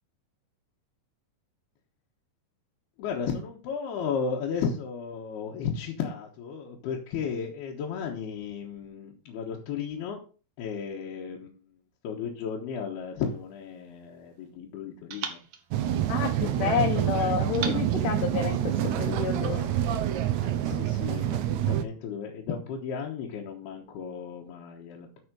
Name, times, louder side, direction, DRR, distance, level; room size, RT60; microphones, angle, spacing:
voice 1, 3.0-10.2 10.6-11.5 12.0-15.4 20.4-25.1, left 6 dB, 85° left, -2 dB, 3.3 m, -34 dB
sound 1, 13.3-14.5 15.1-16.7 17.5-19.1, right 7 dB, 65° right, 1.6 m, -42 dB
sound 2, 15.7-21.8, right 12 dB, 85° right, 1.6 m, -27 dB
voice 2, 16.1-18.6 18.8-19.7, left 8 dB, 70° left, 3 dB, 2.2 m, -29 dB
13.0 x 5.1 x 5.1 m, 0.36 s
omnidirectional pair, 4.5 m